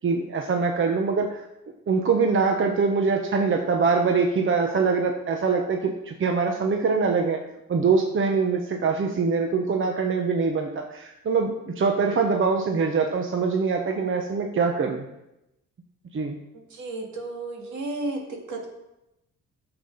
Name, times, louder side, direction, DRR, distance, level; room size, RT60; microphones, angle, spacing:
voice 1, 0.0-1.5 1.9-7.4 7.7-15.0 16.1-16.4, right 4 dB, 40° right, 3 dB, 1.1 m, -23 dB
voice 2, 16.7-18.2 18.5-18.7, right 2 dB, 70° right, 0 dB, 2.6 m, -32 dB
9.8 x 7.0 x 5.7 m, 0.90 s
cardioid pair, 90°, 30 cm